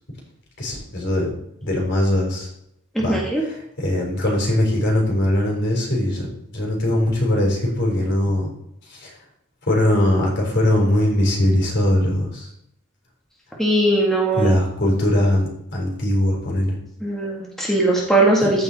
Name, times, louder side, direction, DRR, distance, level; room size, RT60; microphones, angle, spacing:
voice 1, 0.6-1.3 1.6-2.5 3.0-6.3 6.5-8.5 8.9-9.1 9.7-12.5 14.3-16.8 18.4-18.6, left 1 dB, 55° left, -1 dB, 3.9 m, -21 dB
voice 2, 3.0-3.4 13.6-14.5 17.0-18.6, right 2 dB, ahead, -4 dB, 1.8 m, -19 dB
14.5 x 5.4 x 4.2 m, 0.77 s
head